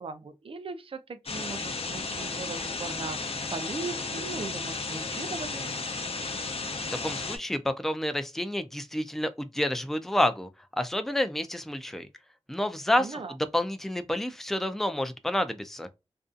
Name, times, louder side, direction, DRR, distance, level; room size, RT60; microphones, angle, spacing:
voice 1, 0.0-5.7 13.0-13.3, right 4 dB, 55° right, 0.4 m, -38 dB
sound 1, 1.3-7.4, left 3 dB, 65° left, 0.6 m, -34 dB
voice 2, 7.0-12.1 12.5-15.9, left 1 dB, 5° left, 0.4 m, -29 dB
2.6 x 2.3 x 2.3 m
wide cardioid pair, 100°, 11 cm